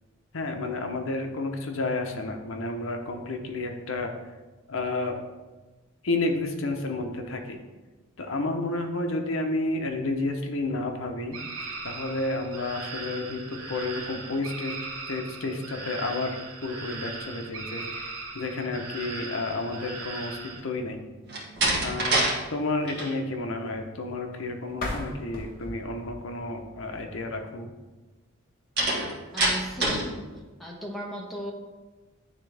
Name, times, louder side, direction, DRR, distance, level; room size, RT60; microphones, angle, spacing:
voice 1, 0.3-4.1 4.7-5.2 6.0-7.6 8.2-11.4 11.8-14.7 15.1-20.4 20.6-21.0 21.8-27.7, left 2 dB, 65° left, 4 dB, 0.8 m, -31 dB
sound 1, 11.3-20.6, right 3 dB, 80° right, 0.9 m, -39 dB
Slam, 21.3-22.4 22.7-23.1 28.8-30.1, right 2 dB, 50° right, 1.4 m, -25 dB
sound 2, 24.7-27.6, left 1 dB, 40° left, 1.1 m, -38 dB
voice 2, 29.3-30.2 30.6-31.5, equal, ahead, -2 dB, 0.9 m, -36 dB
9.7 x 3.5 x 3.4 m, 1.2 s
head